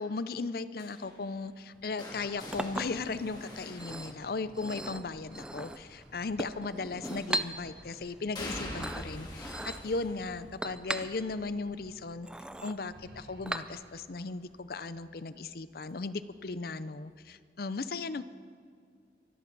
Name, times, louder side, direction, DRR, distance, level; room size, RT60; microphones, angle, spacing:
voice 1, 0.0-12.3 12.6-18.2, left 3 dB, 55° left, 14 dB, 0.6 m, -37 dB
sound 1, 0.8-4.8 7.0-7.6 8.3-14.2 14.5-14.9 16.2-16.3, left 1 dB, 25° left, 2.1 m, -46 dB
Chink clink, 2.1-14.1, right 1 dB, 5° right, 0.4 m, -40 dB
sound 2, 3.2-10.4 10.8-12.1 12.3-12.5 12.9-14.0, right 1 dB, 60° right, 1.7 m, -60 dB
24.0 x 12.0 x 4.1 m, 2.2 s
head